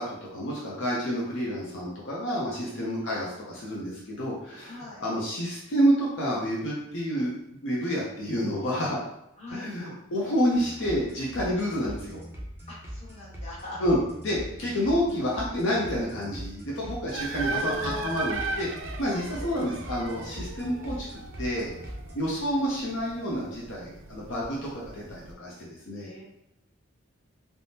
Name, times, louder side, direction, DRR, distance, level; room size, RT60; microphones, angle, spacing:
voice 1, 0.0-7.3 7.6-9.0 9.5-12.2 13.8-14.0 14.2-18.7 19.0-21.1 21.4-21.7 22.1-26.1, equal, 70° left, -5 dB, 0.6 m, -29 dB
voice 2, 2.6-3.4 4.6-5.0 9.4-9.7 12.7-13.8 17.4-18.5 26.0-26.2, left 1 dB, 30° left, -8 dB, 1.1 m, -40 dB
sound 1, 10.5-22.2, equal, 10° right, 0.5 m, -41 dB
sound 2, 17.1-25.3, right 4 dB, 70° right, 0.3 m, -38 dB
3.4 x 2.0 x 2.7 m, 0.81 s
head